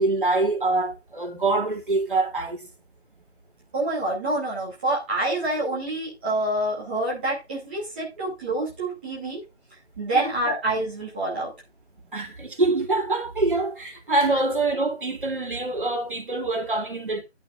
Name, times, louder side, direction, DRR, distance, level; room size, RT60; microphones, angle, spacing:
voice 1, 0.0-2.7 10.1-10.3 12.1-17.2, right 2 dB, 45° right, 3.2 m, -25 dB
voice 2, 3.7-9.4 10.0-11.5, right 1 dB, 10° right, 2.5 m, -27 dB
12.0 x 10.5 x 2.5 m
figure-of-eight pair, 165°, 35 cm